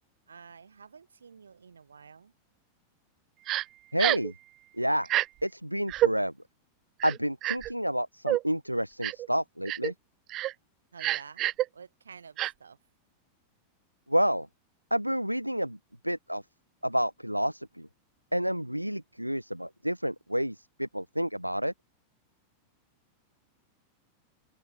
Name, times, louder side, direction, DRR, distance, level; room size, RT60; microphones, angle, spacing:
voice 1, 0.3-2.3 10.9-11.5 11.7-12.8, right 6 dB, 70° right, 3.0 m, -50 dB
Crying sobbing, 3.5-3.6 4.0-4.3 5.0-5.3 5.9-6.1 7.0-7.7 8.3-8.4 9.0-9.3 9.7-9.9 10.3-10.5 11.0-11.6 12.4-12.5, right 15 dB, 35° right, 0.6 m, -27 dB
voice 2, 3.9-4.3 4.8-5.1 5.4-6.3 7.0-9.9 14.1-14.5 14.9-15.8 16.0-16.4 16.8-17.9 18.3-21.7, equal, 90° right, 0.4 m, -29 dB
figure-of-eight pair, 90°, 0 cm